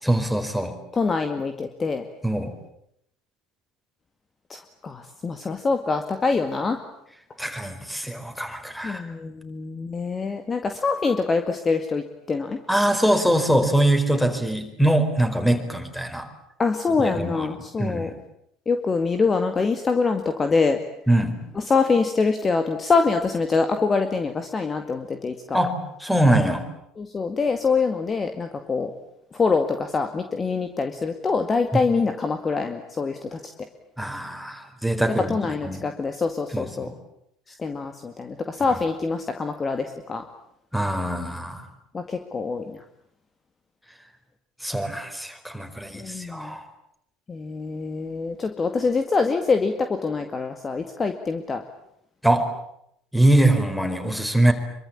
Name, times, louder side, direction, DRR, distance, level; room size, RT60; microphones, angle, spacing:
voice 1, 0.0-0.7 2.2-2.5 7.4-9.0 12.7-16.3 17.0-17.5 17.8-18.1 21.1-21.4 25.5-26.6 34.0-35.4 35.6-35.8 36.5-36.9 38.7-38.8 40.7-41.7 44.6-46.6 52.2-52.5 53.1-54.5, right 1 dB, ahead, 8 dB, 4.7 m, -23 dB
voice 2, 0.9-2.0 4.5-6.8 8.8-12.6 16.6-18.1 18.7-20.8 21.6-25.6 27.0-28.9 29.3-33.4 35.3-36.9 37.5-40.2 41.9-42.8 45.9-46.6 47.3-51.6, left 4 dB, 25° left, 7 dB, 2.1 m, -25 dB
26.5 x 24.0 x 8.7 m, 0.75 s
figure-of-eight pair, 65°, 0 cm